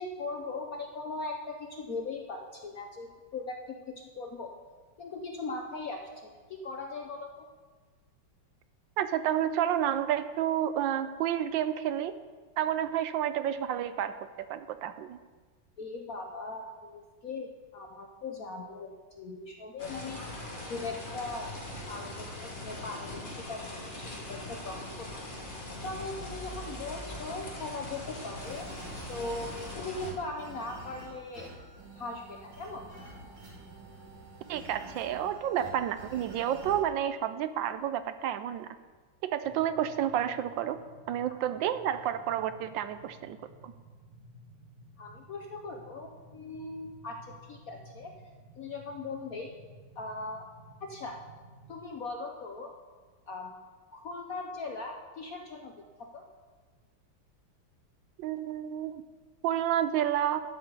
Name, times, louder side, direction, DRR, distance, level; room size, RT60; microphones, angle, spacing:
voice 1, 0.0-4.5 5.0-7.5 15.8-20.2 20.7-21.6 21.9-22.3 22.6-25.2 25.8-28.7 29.1-31.5 31.9-32.8 41.4-41.5 45.0-48.1 48.6-49.5 50.0-50.5 50.8-51.2 51.7-52.7 53.3-53.6 53.9-55.7 56.1-56.2, left 3 dB, 55° left, 2 dB, 1.1 m, -39 dB
voice 2, 9.0-12.2 12.6-15.2 34.5-38.8 39.2-40.8 41.1-43.4 43.6-43.7 58.2-59.0 59.4-60.4, right 10 dB, 75° right, 12 dB, 1.2 m, -30 dB
sound 1, 19.8-30.1, left 1 dB, 25° left, 1.8 m, -41 dB
sound 2, 28.4-36.8, right 2 dB, 60° right, 2.8 m, -48 dB
sound 3, 39.4-51.7, right 1 dB, 40° right, 3.9 m, -54 dB
12.0 x 5.7 x 8.1 m, 1.4 s
omnidirectional pair, 2.2 m